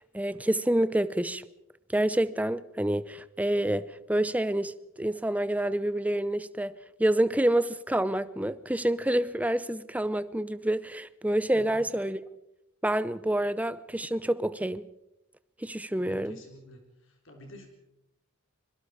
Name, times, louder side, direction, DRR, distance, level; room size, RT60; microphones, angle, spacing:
voice 1, 0.0-1.4 1.9-6.7 7.0-12.2 12.8-14.9 15.6-16.4, right 1 dB, 5° right, 0.7 m, -28 dB
voice 2, 11.5-11.9 15.9-17.7, left 1 dB, 60° left, 3.9 m, -49 dB
25.5 x 22.5 x 4.9 m
head